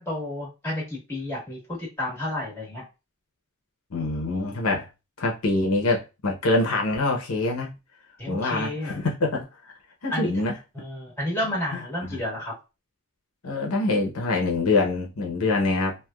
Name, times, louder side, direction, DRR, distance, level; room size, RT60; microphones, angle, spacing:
voice 1, 0.0-2.8 8.2-9.0 10.1-10.3 10.7-12.5, left 1 dB, 10° left, 1.6 m, -31 dB
voice 2, 3.9-4.9 5.2-7.7 8.3-9.5 10.0-10.5 11.7-11.8 12.1-12.2 13.4-16.0, left 2 dB, 80° left, 0.8 m, -25 dB
3.3 x 2.6 x 2.3 m
head